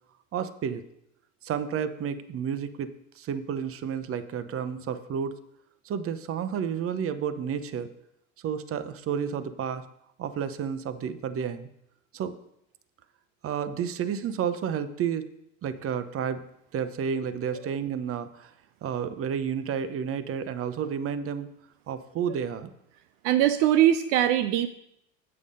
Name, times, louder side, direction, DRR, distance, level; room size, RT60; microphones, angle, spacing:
voice 1, 0.3-0.8 1.4-5.4 5.8-7.9 8.4-9.8 10.2-11.7 12.1-12.3 13.4-15.3 15.6-16.4 16.7-18.5 18.8-21.5 21.9-22.7, right 7 dB, 35° right, 12 dB, 0.9 m, -31 dB
voice 2, 23.2-24.7, right 12 dB, 65° right, 12 dB, 0.6 m, -21 dB
8.7 x 6.9 x 5.4 m, 0.76 s
hypercardioid pair, 85°, 37 cm